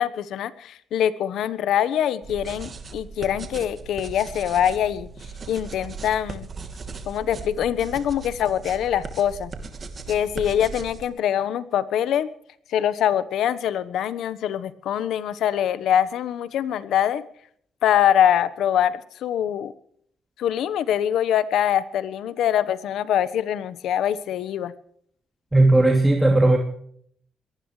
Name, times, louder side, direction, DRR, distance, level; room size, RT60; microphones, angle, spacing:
voice 1, 0.0-5.1 5.5-6.5 7.1-9.5 10.1-12.3 12.7-17.2 17.8-19.7 20.4-24.7, left 10 dB, 75° left, 1.1 m, -23 dB
sound 1, 2.2-11.1, right 4 dB, 40° right, 2.8 m, -38 dB
voice 2, 25.5-26.6, right 2 dB, 10° right, 2.8 m, -16 dB
23.0 x 19.0 x 3.3 m
cardioid pair, 90°, 0 cm